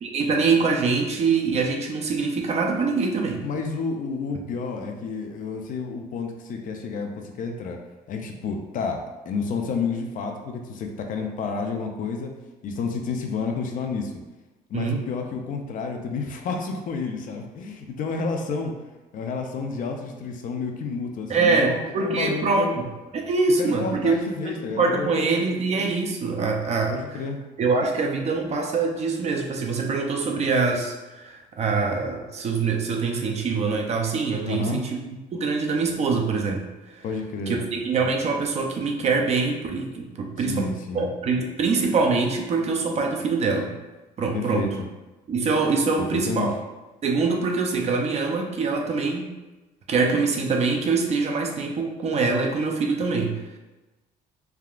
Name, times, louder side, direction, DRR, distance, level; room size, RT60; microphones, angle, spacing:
voice 1, 0.0-3.4 14.7-15.0 21.3-22.9 23.1-24.2 24.4-27.2 27.6-34.9 35.3-36.7 36.9-37.0 37.5-40.7 40.9-43.7 44.2-44.6 45.3-46.5 47.0-49.3 49.9-53.4, right 4 dB, 40° right, 2 dB, 0.4 m, -24 dB
voice 2, 3.4-7.8 8.1-12.3 12.6-14.1 14.7-18.8 19.1-22.8 23.6-25.9 26.9-27.4 34.4-34.8 37.0-37.6 40.5-41.1 44.3-44.7 46.1-46.5, left 4 dB, 50° left, 4 dB, 0.4 m, -30 dB
3.5 x 2.3 x 2.3 m, 1.1 s
cardioid pair, 110°, 17 cm